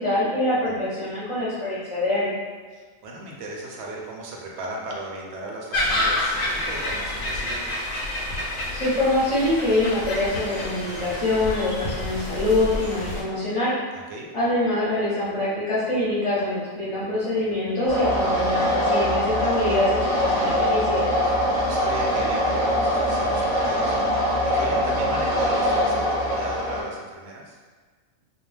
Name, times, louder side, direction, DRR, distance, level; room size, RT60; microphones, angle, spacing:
voice 1, 0.0-2.3 8.7-13.7 14.3-21.1, left 1 dB, 30° left, -10 dB, 0.7 m, -24 dB
voice 2, 2.7-7.7 13.9-14.3 21.6-27.6, right 2 dB, 65° right, -2 dB, 0.7 m, -36 dB
sound 1, 5.7-13.2, left 1 dB, 80° left, 1.0 m, -29 dB
sound 2, 17.9-26.8, equal, 5° left, 0.9 m, -23 dB
2.3 x 2.2 x 3.2 m, 1.5 s
omnidirectional pair, 1.4 m